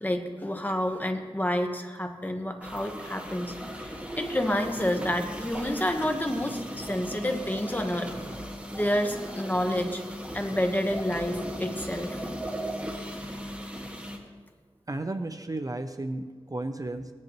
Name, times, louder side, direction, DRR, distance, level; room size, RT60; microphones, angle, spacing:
voice 1, 0.0-3.9 4.2-8.1 8.7-10.0 10.3-12.2, left 1 dB, 15° left, 4 dB, 1.2 m, -29 dB
sound 1, 2.6-14.2, equal, 10° right, 1.8 m, -37 dB
voice 2, 14.9-17.1, right 2 dB, 35° right, 8 dB, 0.6 m, -33 dB
18.5 x 10.5 x 3.1 m, 1.5 s
wide cardioid pair, 70°, 10 cm